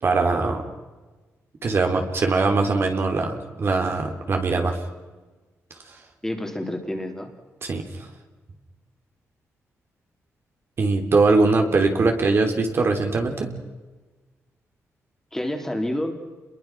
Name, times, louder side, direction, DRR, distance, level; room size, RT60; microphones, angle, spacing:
voice 1, 0.0-0.6 1.6-4.8 7.6-7.8 10.8-13.5, right 3 dB, 45° right, 4 dB, 3.4 m, -21 dB
voice 2, 6.2-7.3 15.3-16.1, left 1 dB, 10° left, 3 dB, 3.4 m, -28 dB
29.0 x 22.5 x 6.1 m, 1.3 s
cardioid pair, 115°, 5 cm